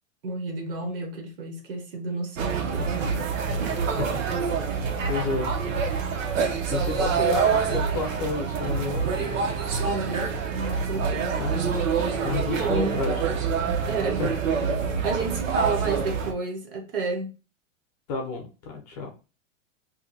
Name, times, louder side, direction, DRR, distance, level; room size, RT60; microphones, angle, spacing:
voice 1, 0.2-3.3 3.6-3.8 5.4-5.5 9.8-11.5 12.5-13.0 13.9-14.2 15.0-17.3, right 3 dB, 45° right, 0.8 m, -31 dB
sound 1, 2.4-16.3, right 5 dB, 80° right, 0.8 m, -26 dB
voice 2, 3.7-4.1 5.1-5.5 6.7-9.4 11.3-11.6 12.2-13.2 14.2-14.3 18.1-19.1, left 3 dB, 30° left, 0.7 m, -30 dB
2.7 x 2.2 x 3.9 m
supercardioid pair, 175°, 38 cm